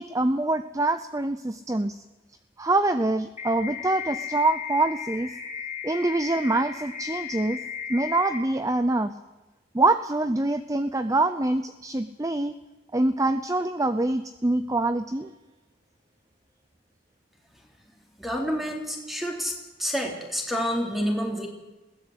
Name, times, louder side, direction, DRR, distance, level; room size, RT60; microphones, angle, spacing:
voice 1, 0.0-2.0 2.6-5.3 5.8-7.6 7.9-9.1 9.7-12.5 12.9-15.3, right 2 dB, 20° right, 11 dB, 0.7 m, -25 dB
sound 1, 3.4-8.4, left 7 dB, 40° left, 3.3 m, -35 dB
voice 2, 18.2-19.5 19.8-21.5, equal, ahead, 1 dB, 3.9 m, -28 dB
21.0 x 17.0 x 8.2 m, 1.1 s
head